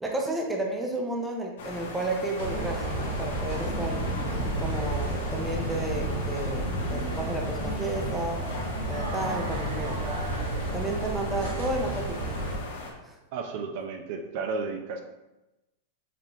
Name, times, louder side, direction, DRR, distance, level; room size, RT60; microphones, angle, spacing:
voice 1, 0.0-4.0 4.6-8.4 8.9-10.0 10.7-12.4 13.0-13.2, right 1 dB, 10° right, 0 dB, 0.6 m, -32 dB
sound 1, 1.6-12.9, left 3 dB, 80° left, 1.1 m, -39 dB
sound 2, 2.4-12.6, right 2 dB, 90° right, 1.3 m, -32 dB
sound 3, 3.3-8.2, left 3 dB, 30° left, 0.5 m, -38 dB
voice 2, 13.3-15.0, right 4 dB, 55° right, 5 dB, 0.6 m, -33 dB
5.0 x 3.5 x 3.0 m, 0.98 s
supercardioid pair, 150°, 0 cm